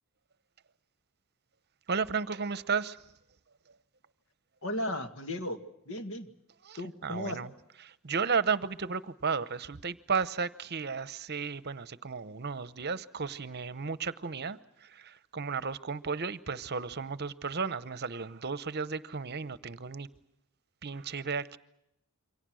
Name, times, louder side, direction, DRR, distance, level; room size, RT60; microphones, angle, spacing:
voice 1, 1.9-3.0 6.6-7.5 7.8-20.1 20.8-21.6, right 5 dB, 50° right, 15 dB, 0.9 m, -34 dB
voice 2, 4.6-5.6 5.9-6.3 6.8-7.4, left 1 dB, 65° left, 7 dB, 2.2 m, -35 dB
28.0 x 24.5 x 6.4 m, 0.83 s
head